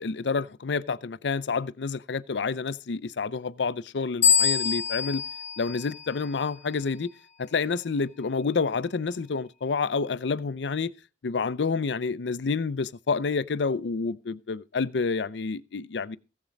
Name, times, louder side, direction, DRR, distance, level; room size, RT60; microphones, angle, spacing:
voice 1, 0.0-5.2 5.6-7.1 7.4-10.9 11.2-16.2, left 4 dB, 85° left, 0.5 m, -29 dB
sound 1, 4.2-6.7, left 7 dB, 40° left, 1.0 m, -25 dB
16.0 x 7.3 x 5.1 m
head